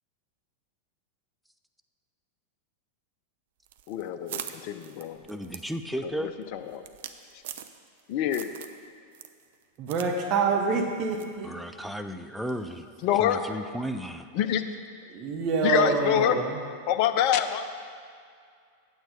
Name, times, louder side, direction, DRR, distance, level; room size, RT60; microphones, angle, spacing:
sound 1, 3.7-8.0 8.3-8.8 9.1-10.1 10.4-10.5 11.2-11.4, right 10 dB, 55° right, 0.5 m, -41 dB
voice 1, 3.9-5.2 6.0-6.8 8.1-8.5 13.0-13.4 14.3-14.6 15.6-16.4 16.9-17.6, left 10 dB, 45° left, 9 dB, 0.6 m, -26 dB
voice 2, 5.3-6.3 11.4-12.9 13.2-14.3, equal, ahead, 6 dB, 0.5 m, -34 dB
voice 3, 9.8-11.5 15.1-16.6, right 5 dB, 35° right, 2 dB, 1.2 m, -26 dB
8.8 x 7.9 x 5.1 m, 2.2 s
figure-of-eight pair, 90°, 0 cm